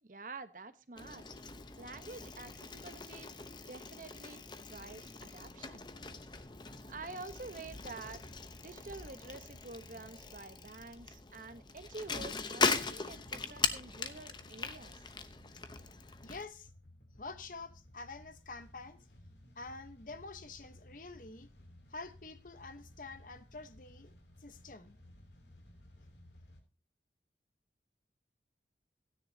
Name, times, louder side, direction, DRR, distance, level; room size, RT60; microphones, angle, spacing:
voice 1, 0.0-1.2 1.8-3.3 3.7-5.8 6.9-8.2 8.6-15.1, right 3 dB, 45° right, 1.0 m, -48 dB
Bicycle, 1.0-16.5, left 4 dB, 25° left, 0.8 m, -40 dB
sound 1, 12.7-26.6, left 1 dB, 80° left, 3.2 m, -58 dB
voice 2, 16.2-16.7 17.2-19.0 19.6-21.5 21.9-24.1 24.4-25.0, left 3 dB, 50° left, 1.0 m, -47 dB
16.0 x 9.9 x 2.8 m
head